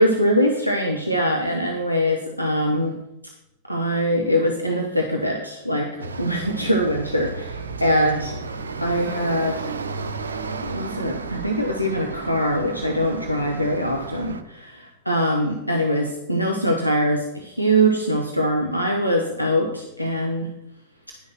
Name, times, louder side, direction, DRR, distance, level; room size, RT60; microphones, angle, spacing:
voice 1, 0.0-3.0 3.7-8.4 8.8-9.7 10.5-20.5, equal, 90° left, 1 dB, 0.9 m, -23 dB
sound 1, 6.0-14.4, right 4 dB, 70° right, 0.6 m, -33 dB
10.0 x 5.6 x 5.8 m, 0.84 s
figure-of-eight pair, 90°, 0 cm